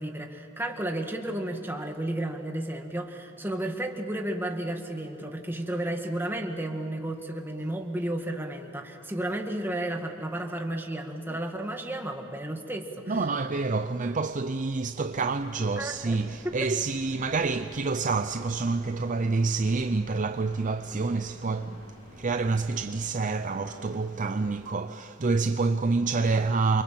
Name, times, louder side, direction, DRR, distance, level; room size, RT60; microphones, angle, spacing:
voice 1, 0.0-13.2 15.8-16.5, right 1 dB, 10° right, 1.9 m, -33 dB
voice 2, 13.1-21.8 22.2-26.8, right 3 dB, 40° right, 0.6 m, -27 dB
sound 1, 15.1-24.7, left 1 dB, 30° left, 7.6 m, -50 dB
28.5 x 24.5 x 7.6 m
head